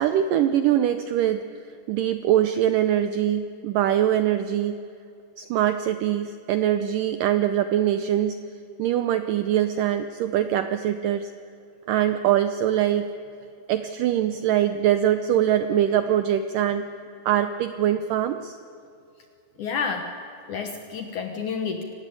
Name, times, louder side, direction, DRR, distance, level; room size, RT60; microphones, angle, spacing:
voice 1, 0.0-1.5 1.9-4.8 5.4-8.4 8.8-11.3 11.9-13.1 13.7-16.9 17.3-18.6, right 11 dB, 85° right, 10 dB, 1.9 m, -23 dB
voice 2, 19.6-20.2 20.5-21.8, left 5 dB, 65° left, 6 dB, 2.2 m, -29 dB
26.5 x 18.5 x 8.5 m, 2.6 s
omnidirectional pair, 4.8 m